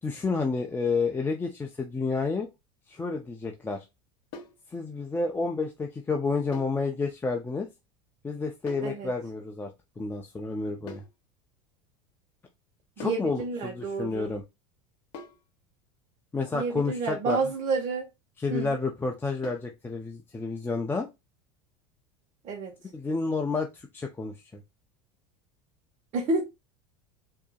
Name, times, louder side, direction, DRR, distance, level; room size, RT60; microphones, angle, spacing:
voice 1, 0.0-2.5 2.9-3.8 4.7-7.7 8.2-11.0 13.0-14.4 16.3-17.4 18.4-21.1 22.9-24.6, left 4 dB, 15° left, 0.6 m, -30 dB
sound 1, 4.3-4.6 6.5-6.8 8.7-9.0 10.9-11.2 13.0-13.3 15.1-15.5 17.3-17.6 19.4-19.7, left 4 dB, 65° left, 1.0 m, -43 dB
voice 2, 13.0-14.3 16.5-18.1 18.5-18.8 22.4-22.7 26.1-26.4, right 4 dB, 40° right, 1.3 m, -30 dB
4.6 x 2.9 x 2.3 m
supercardioid pair, 110°, 16 cm